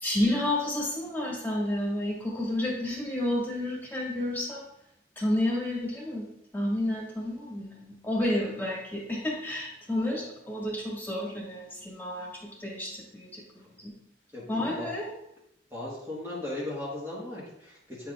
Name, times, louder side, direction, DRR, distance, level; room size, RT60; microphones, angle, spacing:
voice 1, 0.0-4.6 5.2-6.2 6.5-12.3 12.6-13.4 13.8-13.9 14.5-15.1, left 1 dB, 10° left, -4 dB, 1.8 m, -30 dB
voice 2, 14.3-14.9 15.7-18.1, left 1 dB, 15° right, -7 dB, 1.5 m, -37 dB
9.4 x 6.0 x 2.4 m, 0.79 s
head